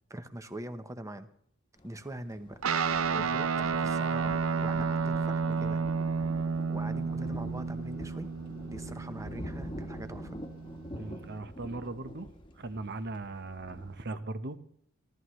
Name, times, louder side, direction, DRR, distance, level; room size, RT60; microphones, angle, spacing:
voice 1, 0.1-1.3 1.8-2.6 3.1-5.8 6.2-6.3 6.7-8.3 8.6-10.4, right 1 dB, 15° right, 10 dB, 0.9 m, -43 dB
Thunder, 1.8-14.1, equal, 25° left, 1.3 m, -45 dB
Guitar, 2.6-11.4, right 5 dB, 70° right, 0.6 m, -31 dB
voice 2, 10.9-12.3 12.6-14.6, right 2 dB, 55° right, 11 dB, 1.0 m, -39 dB
29.5 x 13.0 x 3.2 m, 0.66 s
head